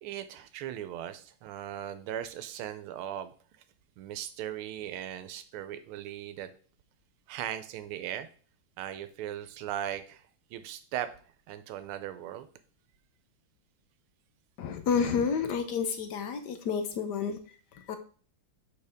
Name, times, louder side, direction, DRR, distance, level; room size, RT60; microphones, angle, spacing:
voice 1, 0.0-3.3 4.0-6.5 7.3-8.3 8.8-11.1 11.5-12.5, right 11 dB, 85° right, 11 dB, 1.5 m, -38 dB
voice 2, 14.6-18.0, left 6 dB, 65° left, 8 dB, 1.1 m, -30 dB
6.6 x 5.1 x 3.5 m, 0.42 s
omnidirectional pair, 2.3 m